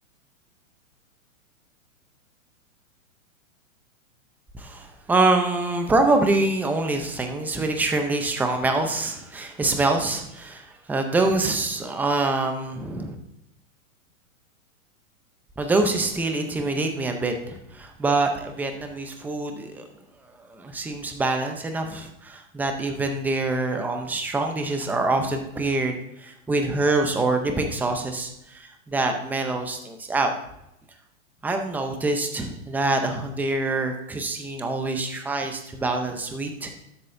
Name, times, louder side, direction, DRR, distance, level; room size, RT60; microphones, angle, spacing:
voice 1, 4.5-13.2 15.6-19.8 20.4-30.3 31.4-36.8, right 2 dB, 5° right, 4 dB, 0.6 m, -25 dB
12.5 x 7.9 x 2.7 m, 0.82 s
hypercardioid pair, 140°, 41 cm